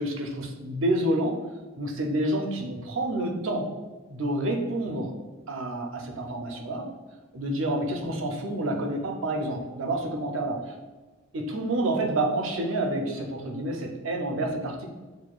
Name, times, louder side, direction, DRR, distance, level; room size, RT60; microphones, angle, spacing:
voice 1, 0.0-1.4 1.8-3.7 4.1-5.1 5.5-6.9 7.3-10.7 11.3-14.9, right 1 dB, 80° right, 2 dB, 0.6 m, -28 dB
6.1 x 2.2 x 2.3 m, 1.3 s
head